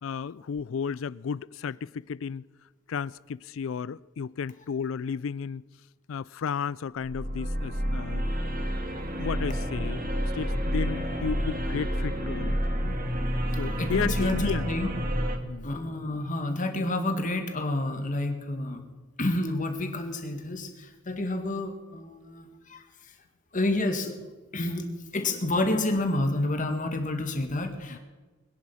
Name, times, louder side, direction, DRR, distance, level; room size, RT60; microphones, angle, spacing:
voice 1, 0.0-2.4 2.9-5.6 6.1-8.2 9.2-10.0 10.4-13.0 13.6-14.7 15.3-15.7 27.9-28.0, left 6 dB, 85° left, 0.4 m, -33 dB
sound 1, 7.0-15.4, equal, 45° right, 1.9 m, -29 dB
voice 2, 13.8-14.9 15.6-18.8 19.2-22.8 23.5-24.2 24.5-24.9 25.1-28.0, left 2 dB, 40° left, 2.0 m, -29 dB
22.0 x 10.5 x 5.6 m
head